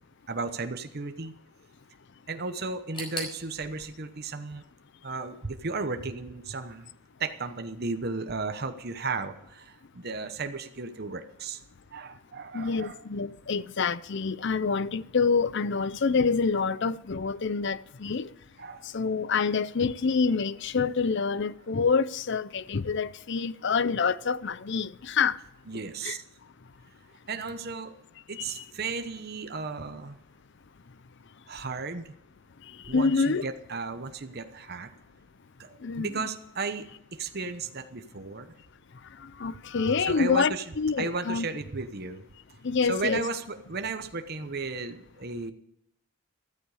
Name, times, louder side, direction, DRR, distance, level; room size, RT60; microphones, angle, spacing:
voice 1, 0.3-1.3 2.3-4.6 5.0-6.9 7.2-11.6 11.9-13.0 18.6-18.8 25.7-26.2 27.3-27.9 28.3-30.2 31.5-32.1 32.9-34.9 35.6-38.5 39.9-40.7 41.0-42.3 42.8-45.5, right 4 dB, 45° right, 1.0 m, -34 dB
sound 1, 2.9-5.8 6.1-6.9 7.2-7.3 8.1-8.2, left 1 dB, 25° left, 5.0 m, -43 dB
voice 2, 12.5-18.3 18.9-25.4 26.0-26.2 28.3-28.6 32.9-33.4 35.8-36.1 39.2-41.5 42.6-43.2, left 5 dB, 55° left, 0.5 m, -27 dB
14.5 x 13.5 x 4.9 m
head